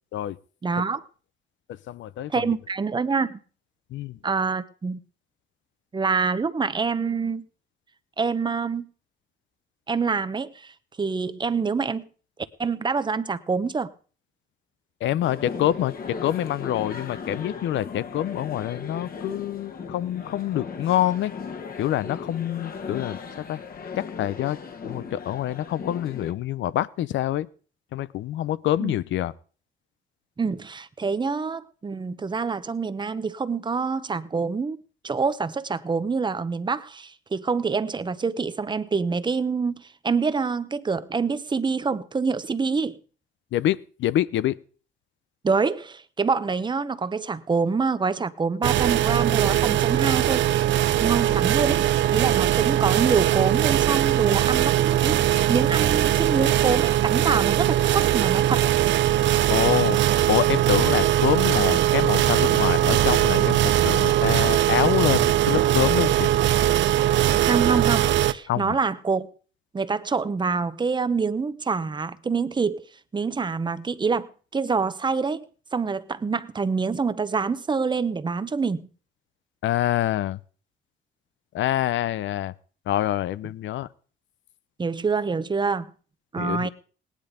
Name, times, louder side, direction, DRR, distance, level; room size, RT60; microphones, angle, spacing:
voice 1, 0.6-1.0 2.3-3.4 4.2-5.0 5.9-7.4 8.2-8.9 9.9-10.7 11.0-12.1 12.6-13.9 28.8-28.9 30.4-34.8 35.0-43.0 45.4-50.5 51.0-58.6 67.4-69.3 69.7-72.8 73.1-75.4 75.7-78.9 84.8-85.9 86.3-86.7, right 5 dB, 25° right, 0.9 m, -26 dB
voice 2, 1.7-2.5 3.9-4.2 15.0-21.3 21.8-23.6 24.0-24.6 24.8-27.5 27.9-29.3 43.5-44.6 59.5-60.0 60.3-66.3 68.5-68.8 79.6-80.4 81.5-82.5 82.9-83.9 86.4-86.7, left 12 dB, 70° left, 0.8 m, -26 dB
sound 1, 15.2-26.3, left 5 dB, 50° left, 1.9 m, -37 dB
sound 2, 48.6-68.3, right 12 dB, 65° right, 0.7 m, -21 dB
18.5 x 10.0 x 5.1 m
cardioid pair, 115°, 20 cm